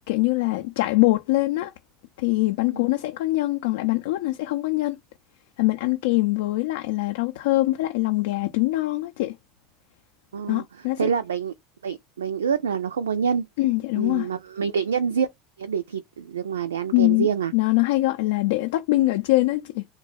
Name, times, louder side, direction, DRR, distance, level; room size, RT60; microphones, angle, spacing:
voice 1, 0.1-1.7 2.2-5.0 5.6-9.3 10.5-11.1 13.6-14.3 16.9-19.9, left 19 dB, 60° left, 0.4 m, -23 dB
voice 2, 10.3-10.6 11.0-11.5 11.8-13.5 14.0-15.3 15.6-17.5, right 7 dB, 75° right, 0.4 m, -26 dB
3.5 x 2.2 x 3.2 m
figure-of-eight pair, 75°, 0 cm